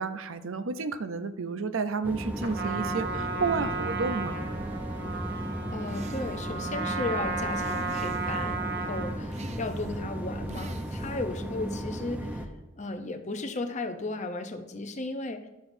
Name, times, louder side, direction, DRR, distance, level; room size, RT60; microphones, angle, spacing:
voice 1, 0.0-4.4, right 4 dB, 85° right, 11 dB, 0.6 m, -31 dB
sound 1, 2.0-12.5, equal, 10° right, 0.7 m, -35 dB
Trumpet, 2.4-9.2, right 4 dB, 55° right, 1.0 m, -34 dB
voice 2, 5.7-12.5 12.8-15.5, left 2 dB, 35° left, 6 dB, 0.7 m, -35 dB
sound 2, 5.9-6.6 7.5-8.6 9.3-10.0 10.5-11.3, right 3 dB, 35° right, 0.4 m, -46 dB
11.5 x 10.0 x 2.7 m, 1.0 s
head